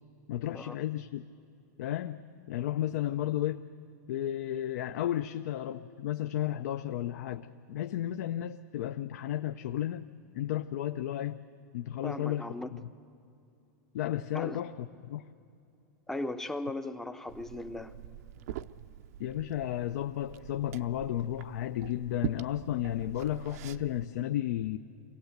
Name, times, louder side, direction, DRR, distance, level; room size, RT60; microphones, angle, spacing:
voice 1, 0.3-1.2 1.8-2.2 2.5-3.7 4.1-10.1 10.3-11.4 11.7-12.4 12.7-12.8 13.9-15.2 19.2-24.8, left 12 dB, 65° left, 0.6 m, -33 dB
voice 2, 12.0-12.8 14.3-14.6 16.1-17.9, left 2 dB, 5° left, 0.6 m, -37 dB
Liquid, 17.3-24.1, right 11 dB, 60° right, 0.6 m, -43 dB
24.5 x 17.5 x 8.0 m
supercardioid pair, 160°, 9 cm